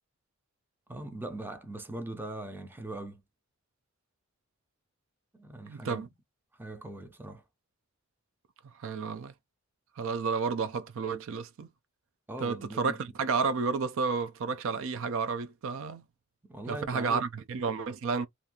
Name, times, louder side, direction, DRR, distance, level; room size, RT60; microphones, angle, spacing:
voice 1, 0.9-3.2 5.3-6.1 6.6-7.4 12.3-13.0 16.5-17.2, right 1 dB, 10° right, 0.5 m, -40 dB
voice 2, 5.7-6.1 8.8-9.3 10.0-11.7 12.4-16.0 16.7-18.3, right 5 dB, 65° right, 0.4 m, -31 dB
2.6 x 2.3 x 2.8 m
head